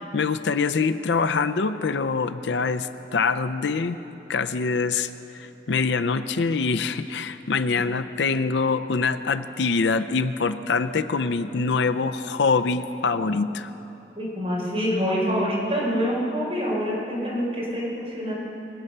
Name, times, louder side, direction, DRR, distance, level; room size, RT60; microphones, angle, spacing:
voice 1, 0.1-4.0 4.3-13.7, left 4 dB, 80° left, 11 dB, 0.5 m, -24 dB
voice 2, 14.2-18.3, equal, 35° right, -5 dB, 4.4 m, -26 dB
23.0 x 8.6 x 6.7 m, 2.9 s
head